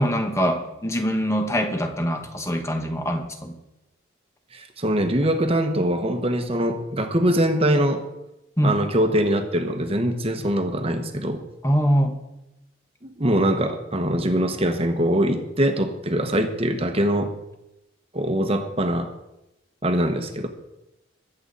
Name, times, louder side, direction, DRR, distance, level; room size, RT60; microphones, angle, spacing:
voice 1, 0.0-3.5 8.6-8.8 11.6-12.1, equal, 15° left, 5 dB, 1.3 m, -23 dB
voice 2, 4.5-8.0 8.6-11.4 13.0-17.3 18.1-19.1 19.8-20.5, right 1 dB, 30° right, 6 dB, 1.2 m, -23 dB
22.5 x 8.0 x 4.1 m, 0.91 s
head